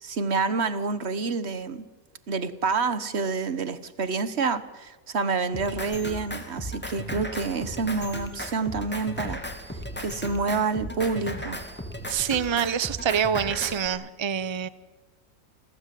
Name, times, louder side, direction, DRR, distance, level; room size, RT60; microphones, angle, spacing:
voice 1, 0.0-1.8 2.3-9.4 10.0-11.6, right 4 dB, 45° right, 13 dB, 1.4 m, -28 dB
Drum kit, 5.5-13.9, equal, 5° left, 2.6 m, -36 dB
voice 2, 12.1-14.7, right 8 dB, 25° right, 16 dB, 0.6 m, -26 dB
29.5 x 21.0 x 7.7 m, 1.2 s
omnidirectional pair, 1.7 m